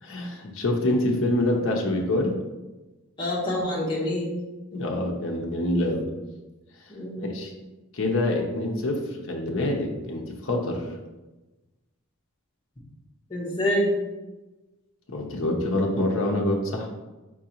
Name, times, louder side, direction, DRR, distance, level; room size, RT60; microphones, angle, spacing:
voice 1, 0.0-2.4 4.7-6.0 7.2-7.5 7.9-10.8 15.1-16.9, left 1 dB, 60° left, 1 dB, 0.7 m, -26 dB
voice 2, 3.2-4.3 4.7-4.8 6.9-7.3 13.3-13.9, left 1 dB, 20° left, -5 dB, 1.1 m, -26 dB
4.6 x 3.7 x 2.9 m, 1.1 s
head